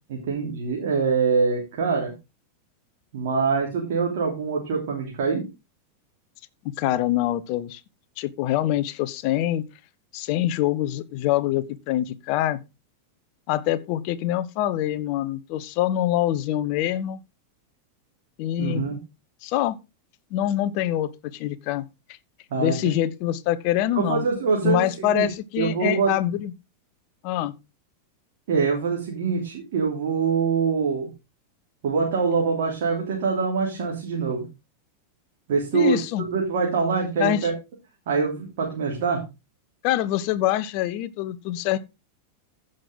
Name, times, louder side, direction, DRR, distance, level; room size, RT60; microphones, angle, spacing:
voice 1, 0.1-2.1 3.1-5.4 18.6-19.0 22.5-22.8 23.9-25.3 25.6-26.1 28.5-31.1 31.8-34.5 35.5-36.0 36.3-37.5 38.1-39.2, right 5 dB, 55° right, 3.2 m, -24 dB
voice 2, 6.8-7.8 8.2-9.6 10.1-12.6 13.5-17.2 18.4-18.8 19.4-19.8 20.3-21.8 22.6-24.2 24.6-26.5 27.2-27.5 35.7-36.2 37.2-37.5 39.8-41.8, left 13 dB, 45° left, 1.0 m, -25 dB
15.0 x 6.6 x 3.8 m
figure-of-eight pair, 90°, 0 cm